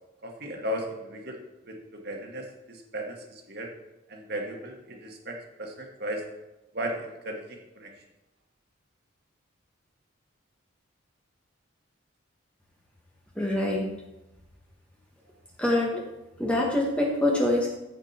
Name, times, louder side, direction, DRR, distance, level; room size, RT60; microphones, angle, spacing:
voice 1, 0.2-1.4 1.6-3.7 4.1-6.2 6.7-7.9, equal, 50° right, 1 dB, 1.7 m, -36 dB
voice 2, 13.4-13.9 15.6-16.0 16.4-17.7, left 1 dB, 5° left, -2 dB, 1.3 m, -25 dB
14.0 x 5.2 x 4.3 m, 1.0 s
head